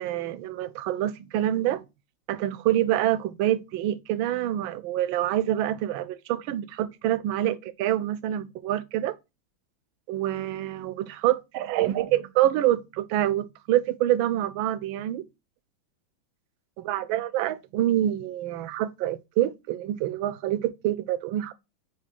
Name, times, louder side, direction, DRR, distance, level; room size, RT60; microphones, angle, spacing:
voice 1, 0.0-1.8 2.3-9.2 10.1-15.3 16.8-21.5, right 13 dB, 80° right, 1.3 m, -26 dB
4.7 x 4.3 x 4.9 m
omnidirectional pair, 2.2 m